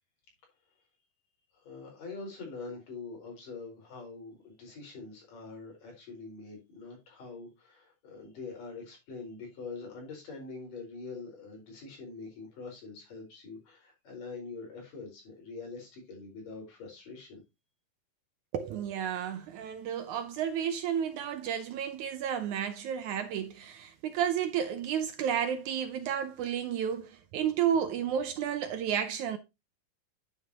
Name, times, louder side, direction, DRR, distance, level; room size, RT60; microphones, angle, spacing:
voice 1, 1.5-17.4, left 4 dB, 60° left, 6.2 m, -44 dB
voice 2, 18.5-29.4, right 9 dB, 75° right, 1.8 m, -32 dB
9.9 x 7.7 x 2.9 m
omnidirectional pair, 4.2 m